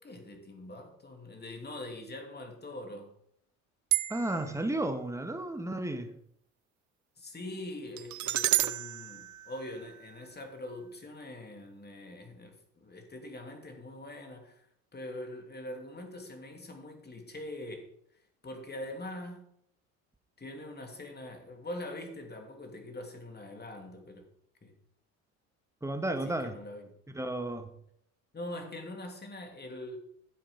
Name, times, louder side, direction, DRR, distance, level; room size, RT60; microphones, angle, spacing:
voice 1, 0.0-3.1 7.2-14.7 14.9-17.9 18.4-19.5 20.4-24.3 24.6-24.8 26.2-26.9 28.3-30.0, left 1 dB, 25° left, 3.0 m, -43 dB
sound 1, 3.9-4.6 8.0-10.2, right 15 dB, 45° right, 0.7 m, -31 dB
voice 2, 4.1-6.1 25.8-26.5 27.1-27.7, right 1 dB, 5° right, 1.7 m, -33 dB
11.0 x 7.6 x 5.1 m
hypercardioid pair, 70°, 41 cm